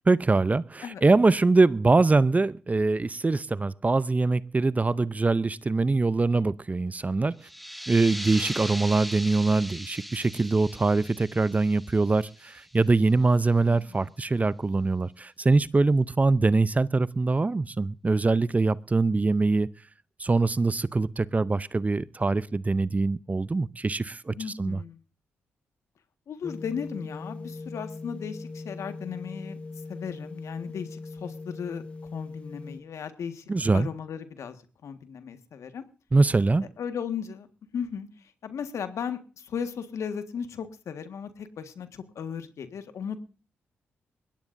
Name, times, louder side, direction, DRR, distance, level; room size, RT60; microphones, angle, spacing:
voice 1, 0.1-7.4 7.9-19.7 20.2-24.8 33.5-33.9 36.1-36.7, right 3 dB, 30° right, 0.6 m, -23 dB
sound 1, 7.4-12.8, equal, ahead, 1.0 m, -39 dB
voice 2, 13.7-14.1 24.3-25.0 26.3-29.6 29.9-31.8 32.1-33.4 33.7-34.6 34.8-35.8 36.8-37.5 37.7-43.2, left 7 dB, 70° left, 1.6 m, -36 dB
sound 2, 26.4-32.8, left 3 dB, 25° left, 1.5 m, -40 dB
21.5 x 17.5 x 2.6 m
supercardioid pair, 50°, 5 cm